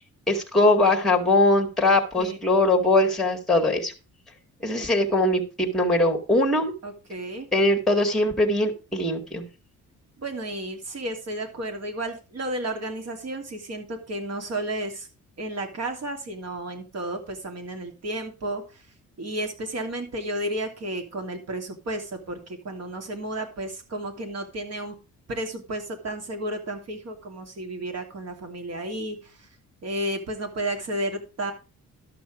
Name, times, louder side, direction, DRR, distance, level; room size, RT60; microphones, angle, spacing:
voice 1, 0.3-3.9 4.6-6.7 7.5-9.4, left 2 dB, ahead, 3 dB, 2.0 m, -21 dB
voice 2, 6.8-7.5 10.2-15.1 15.4-18.8 19.2-25.0 25.3-29.5 29.8-31.5, right 1 dB, 55° right, 5 dB, 2.9 m, -32 dB
12.0 x 6.0 x 4.9 m, 0.32 s
cardioid pair, 90°, 30 cm